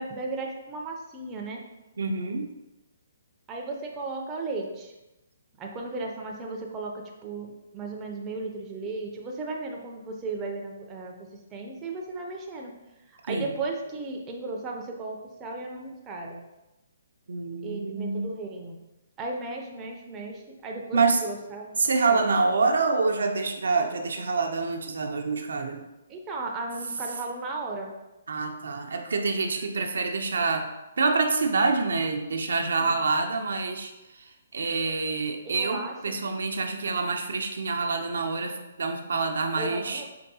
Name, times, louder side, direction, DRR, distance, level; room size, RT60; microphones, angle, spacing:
voice 1, 0.0-1.6 3.5-4.9 5.6-12.7 13.1-16.4 17.6-18.8 19.2-22.4 26.1-27.9 32.7-33.0 35.5-36.2 39.6-40.0, right 3 dB, 20° right, 0 dB, 0.4 m, -35 dB
voice 2, 2.0-2.5 13.3-13.5 17.3-18.3 20.9-21.2 21.8-25.8 28.3-30.7 31.0-40.0, right 4 dB, 75° right, 4 dB, 0.4 m, -26 dB
4.5 x 2.3 x 2.7 m, 0.99 s
hypercardioid pair, 150°, 0 cm